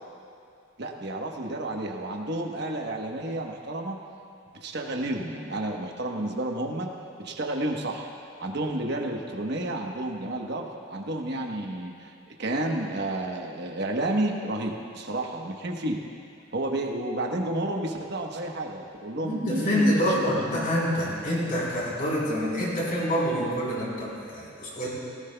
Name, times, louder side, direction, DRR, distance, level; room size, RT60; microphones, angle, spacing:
voice 1, 0.8-4.0 4.6-6.9 7.2-8.1 8.4-12.1 12.4-16.0 16.5-20.7, right 1 dB, 55° right, 1 dB, 1.1 m, -31 dB
voice 2, 19.2-24.9, equal, 45° left, -6 dB, 3.9 m, -26 dB
19.0 x 17.5 x 2.3 m, 2.4 s
head